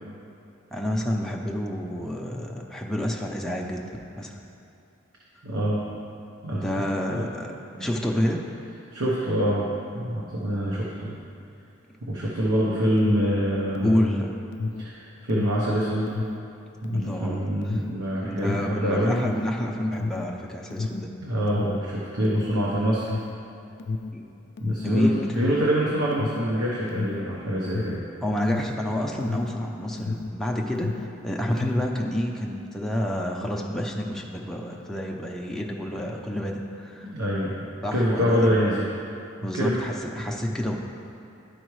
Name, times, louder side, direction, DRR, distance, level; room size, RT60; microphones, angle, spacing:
voice 1, 0.7-4.4 6.5-7.5 7.8-8.4 13.8-14.3 16.9-17.8 18.2-21.1 24.1-24.3 24.8-25.5 28.2-37.1 37.8-38.5 39.4-40.8, left 1 dB, ahead, -1 dB, 0.5 m, -29 dB
voice 2, 5.4-5.8 6.4-7.2 7.8-7.9 8.9-9.7 9.9-11.2 12.0-14.1 14.8-16.2 16.8-19.2 21.2-23.1 24.6-28.1 37.0-38.9 39.5-39.8, equal, 90° right, -5 dB, 0.9 m, -25 dB
Alarm, 13.0-30.4 30.7-32.0, left 3 dB, 55° left, 0.3 m, -32 dB
11.5 x 4.7 x 3.1 m, 2.8 s
head